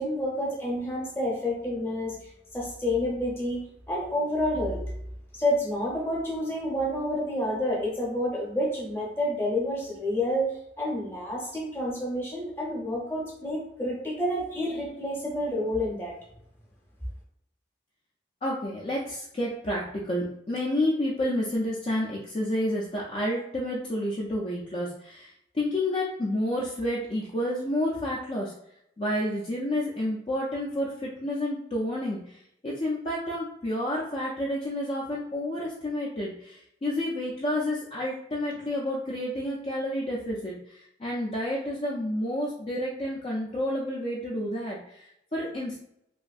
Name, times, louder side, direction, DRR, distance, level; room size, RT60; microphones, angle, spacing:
voice 1, 0.0-4.8 5.3-10.5 10.8-16.2, left 1 dB, 15° left, -3 dB, 0.7 m, -29 dB
voice 2, 18.4-28.5 29.0-45.8, left 1 dB, 35° left, -4 dB, 0.4 m, -30 dB
3.0 x 2.5 x 2.4 m, 0.77 s
head